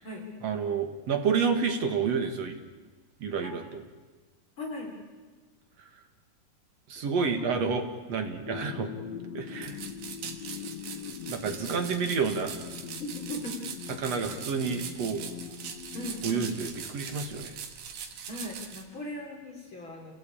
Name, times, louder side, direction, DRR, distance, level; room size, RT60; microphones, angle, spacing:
voice 1, 0.4-2.6 3.2-3.8 6.9-8.9 9.3-9.8 11.3-12.6 14.0-15.2 16.2-17.5, right 5 dB, 55° right, 5 dB, 2.6 m, -29 dB
voice 2, 4.6-4.9 13.0-13.6 15.9-16.5 18.3-20.1, left 1 dB, 35° left, 0 dB, 3.9 m, -38 dB
sound 1, 8.5-17.5, left 9 dB, 60° left, 2.1 m, -42 dB
sound 2, 9.6-18.8, right 7 dB, 85° right, 3.4 m, -41 dB
29.5 x 17.0 x 8.7 m, 1.3 s
omnidirectional pair, 3.9 m